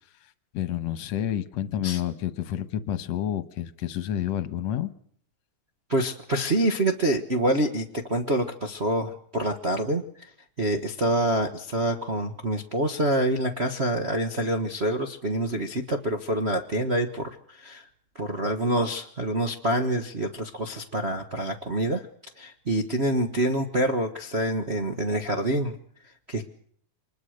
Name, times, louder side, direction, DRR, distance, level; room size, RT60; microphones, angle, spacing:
voice 1, 0.2-4.9, left 10 dB, 65° left, 14 dB, 2.2 m, -29 dB
voice 2, 5.9-10.3 10.6-17.9 18.1-22.1 22.4-25.8 26.3-26.4, right 1 dB, 80° right, 4 dB, 0.5 m, -26 dB
25.5 x 21.0 x 6.6 m, 0.62 s
omnidirectional pair, 3.7 m